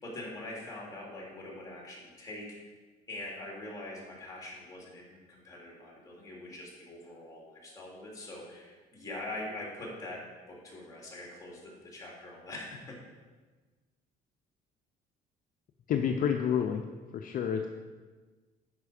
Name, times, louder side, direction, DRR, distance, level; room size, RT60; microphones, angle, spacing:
voice 1, 0.0-2.7 3.1-13.0, left 1 dB, 20° left, -3 dB, 3.1 m, -43 dB
voice 2, 15.9-16.8 17.1-17.7, left 8 dB, 55° left, 5 dB, 0.6 m, -29 dB
9.5 x 5.7 x 5.0 m, 1.3 s
cardioid pair, 110°, 17 cm